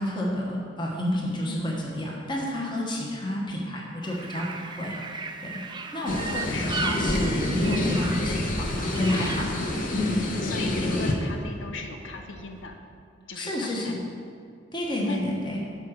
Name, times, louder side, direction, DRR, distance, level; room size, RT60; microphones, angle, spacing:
voice 1, 0.0-4.9 5.4-5.6 5.9-9.5 9.9-10.2 13.3-14.0 14.7-15.6, left 1 dB, 25° left, -3 dB, 1.1 m, -29 dB
sound 1, 4.0-9.5, right 4 dB, 25° right, 0.3 m, -36 dB
voice 2, 6.0-6.9 10.4-12.8 13.3-14.0 15.0-15.4, left 3 dB, 85° left, 4 dB, 0.7 m, -37 dB
sound 2, 6.1-11.1, left 1 dB, 45° left, 0.8 m, -28 dB
Bird vocalization bird call bird song, 7.0-12.7, equal, 5° right, 0.7 m, -40 dB
6.3 x 4.8 x 6.4 m, 2.3 s
head